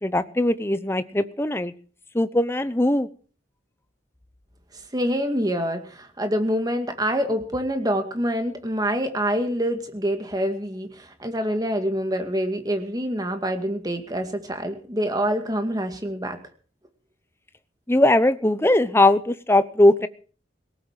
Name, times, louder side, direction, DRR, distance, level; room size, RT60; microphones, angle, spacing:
voice 1, 0.0-1.7 2.1-3.1 17.9-20.1, left 1 dB, 15° left, 13 dB, 0.8 m, -20 dB
voice 2, 4.9-16.4, equal, 20° right, 6 dB, 2.1 m, -26 dB
18.0 x 8.2 x 7.4 m, 0.42 s
head